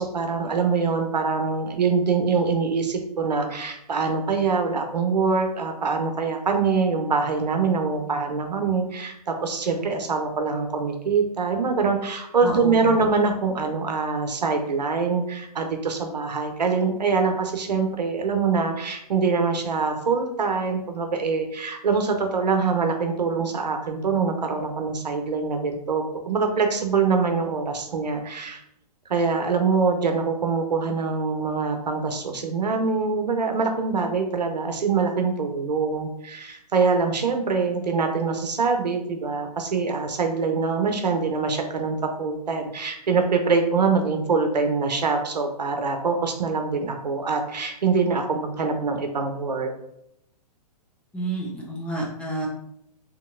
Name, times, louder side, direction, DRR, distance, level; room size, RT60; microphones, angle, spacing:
voice 1, 0.0-28.6 29.1-49.7, right 4 dB, 85° right, 5 dB, 0.6 m, -24 dB
voice 2, 12.4-13.0 51.1-52.5, right 1 dB, 5° left, -3 dB, 0.4 m, -30 dB
2.9 x 2.7 x 2.5 m, 0.75 s
hypercardioid pair, 125°, 21 cm